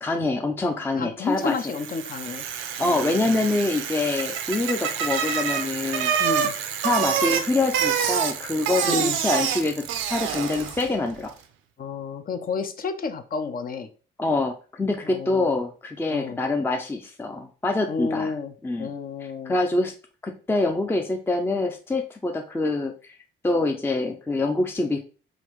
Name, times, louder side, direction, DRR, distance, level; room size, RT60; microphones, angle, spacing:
voice 1, 0.0-1.6 2.8-6.1 6.8-11.3 14.2-18.3 18.6-18.9 19.5-19.9 20.2-23.2 23.4-25.0, left 2 dB, 10° left, 4 dB, 0.5 m, -25 dB
voice 2, 1.0-2.4 2.8-3.6 6.2-6.6 8.8-9.2 11.8-13.9 15.0-15.6 16.1-16.4 17.9-18.5 18.8-19.5, left 4 dB, 45° left, 8 dB, 0.7 m, -31 dB
Bicycle, 1.5-11.0, right 8 dB, 85° right, 0.6 m, -27 dB
3.8 x 2.6 x 4.6 m, 0.38 s
cardioid pair, 90°, 20 cm